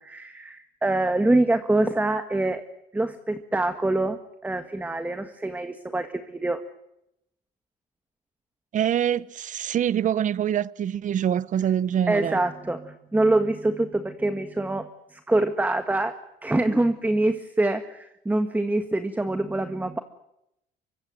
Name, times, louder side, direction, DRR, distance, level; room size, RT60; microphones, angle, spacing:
voice 1, 0.0-2.6 2.9-6.6 12.1-16.1 16.4-20.0, right 2 dB, 10° right, 1.7 m, -25 dB
voice 2, 8.7-12.4, right 9 dB, 50° right, 0.9 m, -25 dB
24.5 x 22.5 x 7.8 m
cardioid pair, 110°, 17 cm